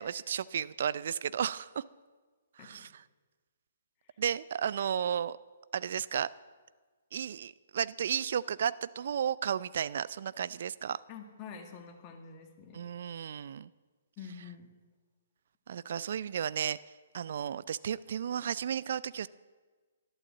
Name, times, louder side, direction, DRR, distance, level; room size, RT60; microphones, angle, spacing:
voice 1, 0.0-1.8 2.6-2.9 4.2-5.4 5.7-6.3 7.1-11.0 12.7-13.7 15.7-16.8 17.1-19.3, right 8 dB, 60° right, 19 dB, 0.5 m, -33 dB
voice 2, 11.1-12.8 14.2-14.7, left 6 dB, 30° left, 3 dB, 2.1 m, -47 dB
12.0 x 12.0 x 7.4 m, 1.4 s
figure-of-eight pair, 130°, 0 cm